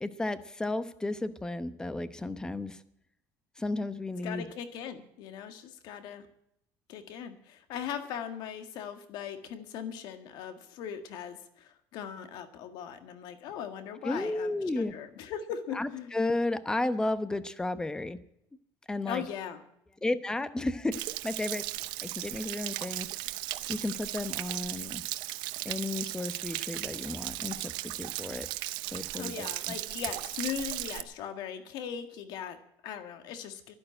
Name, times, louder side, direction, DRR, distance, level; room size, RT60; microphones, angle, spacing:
voice 1, 0.0-2.8 3.6-4.5 14.0-14.9 15.7-18.2 18.9-19.2 20.0-21.6 22.0-23.1 23.7-25.0 25.6-28.5 28.9-29.5, left 2 dB, 10° left, 13 dB, 0.9 m, -33 dB
voice 2, 4.2-6.3 6.9-16.1 19.1-19.6 29.2-33.8, left 8 dB, 65° left, 9 dB, 1.8 m, -39 dB
Stream / Splash splatter / Trickle dribble, 20.9-31.0, right 17 dB, 75° right, 0.7 m, -36 dB
11.5 x 11.0 x 8.9 m, 0.76 s
cardioid pair, 140°, 8 cm